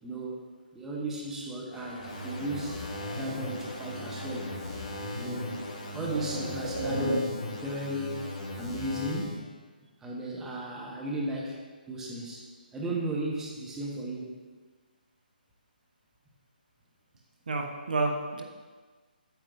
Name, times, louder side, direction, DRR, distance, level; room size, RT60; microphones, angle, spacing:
voice 1, 0.0-4.6 5.1-5.6 5.9-7.3 7.6-8.3 8.5-9.5 10.0-11.6 11.9-14.3, right 1 dB, 10° right, -3 dB, 1.2 m, -35 dB
sound 1, 1.7-6.7, left 1 dB, 65° left, 2.1 m, -45 dB
sound 2, 2.0-9.4, left 1 dB, 45° left, 1.5 m, -38 dB
voice 2, 5.9-7.3 17.5-18.4, right 2 dB, 60° right, 3 dB, 1.1 m, -31 dB
9.5 x 9.1 x 2.7 m, 1.4 s
figure-of-eight pair, 140°, 5 cm